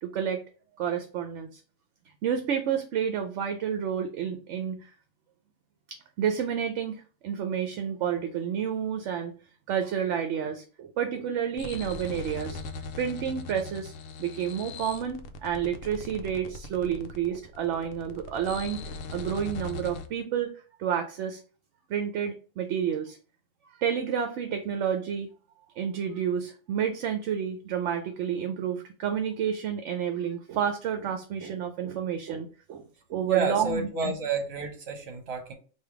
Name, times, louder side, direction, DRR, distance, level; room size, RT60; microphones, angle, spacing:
voice 1, 0.0-0.4 0.8-1.6 2.2-4.9 5.9-9.3 9.7-12.6 13.0-13.9 14.2-20.5 20.8-21.4 21.9-23.2 23.8-25.3 25.8-32.8 33.1-34.1, right 8 dB, 70° right, 6 dB, 0.9 m, -30 dB
sound 1, 11.6-20.1, left 3 dB, 75° left, 1.0 m, -40 dB
voice 2, 33.3-35.5, right 4 dB, 55° right, 4 dB, 1.2 m, -30 dB
3.4 x 2.6 x 4.6 m, 0.39 s
omnidirectional pair, 1.4 m